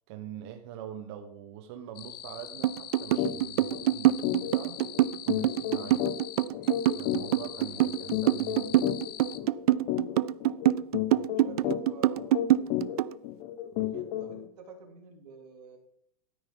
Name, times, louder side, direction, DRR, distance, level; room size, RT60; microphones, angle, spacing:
voice 1, 0.1-4.8 5.2-6.1 6.9-8.8 13.7-14.3, right 10 dB, 45° right, 6 dB, 1.0 m, -44 dB
sound 1, 1.9-9.4, left 11 dB, 80° left, 1.0 m, -43 dB
sound 2, 2.6-13.1, right 13 dB, 70° right, 0.4 m, -25 dB
sound 3, 3.2-3.4 3.7-3.9 4.2-14.5, left 12 dB, 35° left, 0.7 m, -33 dB
voice 2, 10.9-12.4 13.9-15.8, right 5 dB, 90° right, 1 dB, 3.3 m, -49 dB
13.0 x 9.9 x 3.8 m, 0.69 s
supercardioid pair, 160°, 20 cm